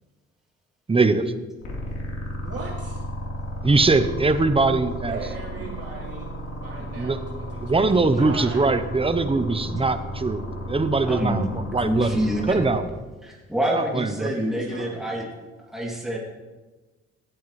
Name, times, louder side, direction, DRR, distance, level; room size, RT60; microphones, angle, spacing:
voice 1, 0.9-1.3 3.6-5.2 5.6-5.8 6.8-7.2 7.6-11.4 11.7-12.2 12.5-12.8 13.7-14.3, right 3 dB, 20° right, 10 dB, 0.9 m, -22 dB
sound 1, 1.6-12.8, equal, 60° left, 3.8 m, -33 dB
voice 2, 2.4-3.0 5.1-8.7 14.2-15.2, right 4 dB, 50° right, -4 dB, 4.0 m, -38 dB
voice 3, 11.0-12.9 13.2-15.2 15.6-16.2, equal, ahead, -4 dB, 2.8 m, -27 dB
18.0 x 9.3 x 3.3 m, 1.2 s
cardioid pair, 90°, 30 cm